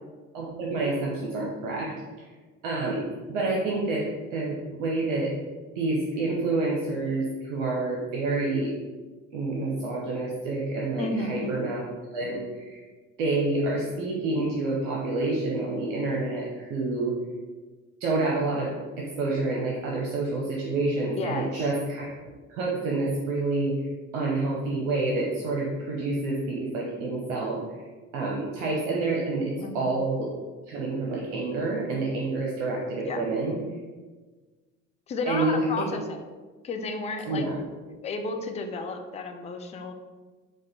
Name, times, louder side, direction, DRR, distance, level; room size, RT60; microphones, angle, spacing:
voice 1, 0.3-1.9 2.6-4.0 4.3-5.3 5.7-8.7 9.3-11.8 12.1-12.8 13.2-17.1 18.0-18.7 19.0-22.1 22.5-23.8 24.1-27.6 28.1-30.3 30.7-33.6 35.2-35.9 37.3-37.6, right 2 dB, 65° right, -3 dB, 0.7 m, -28 dB
voice 2, 11.0-11.5 21.0-21.7 29.6-30.0 33.0-33.3 35.1-36.2 36.6-37.5 38.0-39.9, left 3 dB, 20° left, 6 dB, 0.3 m, -33 dB
4.8 x 2.2 x 4.2 m, 1.3 s
figure-of-eight pair, 55°, 40 cm